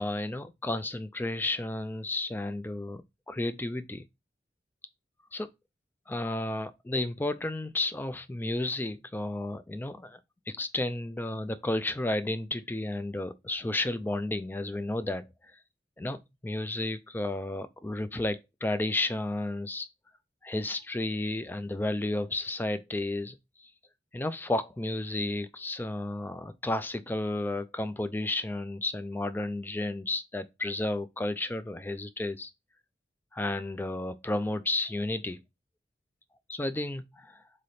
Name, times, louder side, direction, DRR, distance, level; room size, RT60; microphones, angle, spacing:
voice 1, 0.0-4.0 5.3-5.5 6.1-10.2 10.5-15.3 16.0-19.9 20.4-23.7 24.1-32.5 33.3-35.4 36.5-37.4, left 2 dB, 10° left, 0.3 m, -32 dB
3.8 x 3.3 x 4.1 m
head